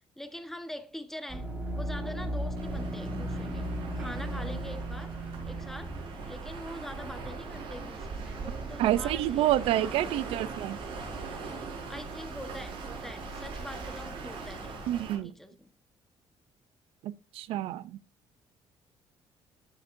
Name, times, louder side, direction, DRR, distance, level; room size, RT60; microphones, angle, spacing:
voice 1, 0.2-5.2 5.4-6.0 6.3-10.4 11.9-15.7, left 1 dB, 5° left, 1.2 m, -44 dB
sound 1, 1.3-15.0, right 1 dB, 15° right, 4.4 m, -39 dB
sound 2, 2.5-15.2, right 4 dB, 65° right, 5.2 m, -42 dB
sound 3, 2.7-7.0, right 9 dB, 35° right, 1.3 m, -45 dB
voice 2, 8.8-10.8 14.9-15.3 17.0-17.8, right 13 dB, 85° right, 0.5 m, -28 dB
13.5 x 8.2 x 2.6 m
cardioid pair, 155°, 10 cm